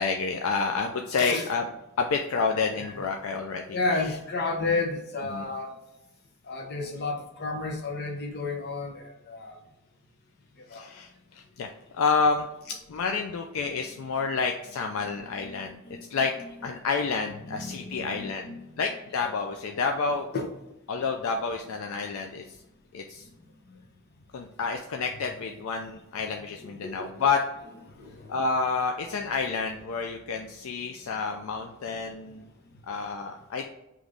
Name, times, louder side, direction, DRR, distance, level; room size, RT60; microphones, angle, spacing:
voice 1, 0.0-1.7 2.0-3.8 5.3-5.5 10.7-11.1 11.6-11.7 11.9-15.8 16.1-16.3 16.6-18.5 18.8-20.3 20.9-22.4 22.9-23.2 24.3-27.4 28.3-32.4 32.9-33.7, left 4 dB, 75° left, 0.4 m, -29 dB
voice 2, 1.1-1.5 2.7-3.1 3.7-5.7 6.5-9.6 10.7-10.8 14.3-14.4 15.0-16.7 17.4-18.8 20.3-20.5 26.6-27.3 27.6-28.5, left 3 dB, 50° left, 0.8 m, -33 dB
3.8 x 3.1 x 3.4 m
head